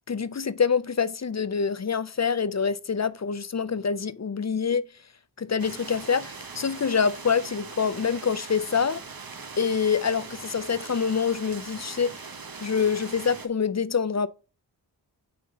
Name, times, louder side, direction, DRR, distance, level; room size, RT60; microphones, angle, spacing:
voice 1, 0.1-4.9 5.4-9.0 9.6-12.3 12.6-14.3, left 6 dB, 40° left, 0.6 m, -26 dB
sound 1, 5.6-13.5, right 4 dB, 50° right, 1.1 m, -41 dB
9.6 x 3.7 x 3.7 m
wide cardioid pair, 55°, 44 cm